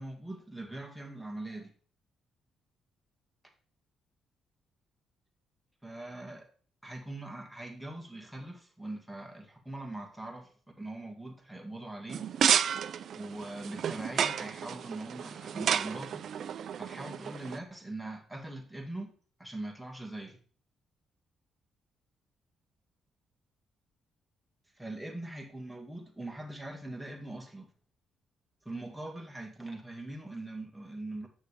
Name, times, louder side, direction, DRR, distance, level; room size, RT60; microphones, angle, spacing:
voice 1, 0.0-1.7 5.8-6.5 6.8-10.5 10.8-12.2 13.2-16.3 16.8-19.1 19.4-20.4 24.8-27.7 28.7-31.3, right 2 dB, 5° right, 2 dB, 1.8 m, -41 dB
sound 1, 12.1-17.6, right 8 dB, 60° right, 0.4 m, -31 dB
8.1 x 6.4 x 3.4 m, 0.43 s
cardioid pair, 90°, 0 cm